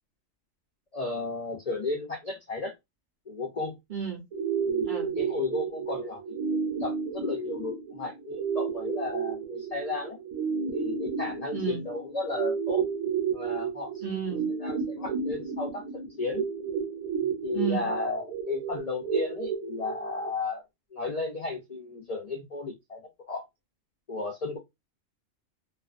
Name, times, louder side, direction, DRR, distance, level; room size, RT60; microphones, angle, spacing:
voice 1, 0.9-2.7 3.3-3.8 4.3-10.2 10.6-12.9 13.3-16.5 17.2-20.6 20.9-23.0 23.3-23.4 24.1-24.6, left 3 dB, 70° left, 0.3 m, -34 dB
voice 2, 3.9-4.2 4.8-5.1 11.5-11.8 14.0-14.5 17.5-17.9, right 8 dB, 55° right, 0.6 m, -31 dB
sound 1, 4.3-20.3, right 6 dB, 70° right, 1.0 m, -32 dB
2.4 x 2.2 x 2.4 m
omnidirectional pair, 1.4 m